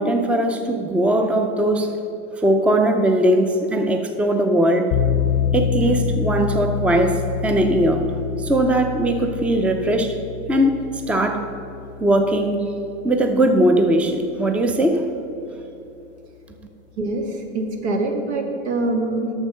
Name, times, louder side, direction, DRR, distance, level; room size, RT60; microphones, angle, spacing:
voice 1, 0.0-1.9 2.4-4.9 5.5-8.1 8.4-10.2 10.5-11.5 12.0-12.7 13.0-15.0, right 1 dB, 5° right, 6 dB, 0.5 m, -19 dB
sound 1, 4.9-13.8, left 7 dB, 50° left, 0.6 m, -27 dB
voice 2, 17.0-19.3, right 2 dB, 80° right, 3 dB, 1.5 m, -24 dB
8.1 x 6.3 x 6.4 m, 2.8 s
hypercardioid pair, 115°, 33 cm